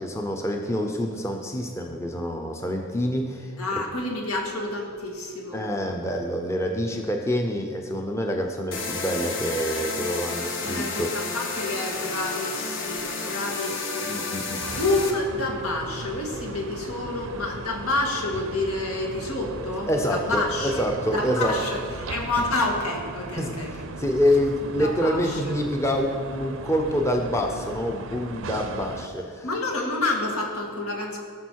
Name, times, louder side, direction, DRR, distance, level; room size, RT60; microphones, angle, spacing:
voice 1, 0.0-3.5 5.5-11.3 14.0-14.6 19.9-21.6 23.4-29.5, equal, 15° left, 2 dB, 0.6 m, -26 dB
voice 2, 3.6-5.6 10.6-14.3 14.8-20.8 21.1-21.8 22.1-23.7 24.8-25.4 29.4-31.2, left 2 dB, 85° left, 1 dB, 2.0 m, -28 dB
sound 1, 8.7-15.1, left 3 dB, 55° left, 1.3 m, -31 dB
sound 2, 14.6-29.1, right 3 dB, 65° right, 0.6 m, -37 dB
17.0 x 6.3 x 4.7 m, 2.2 s
head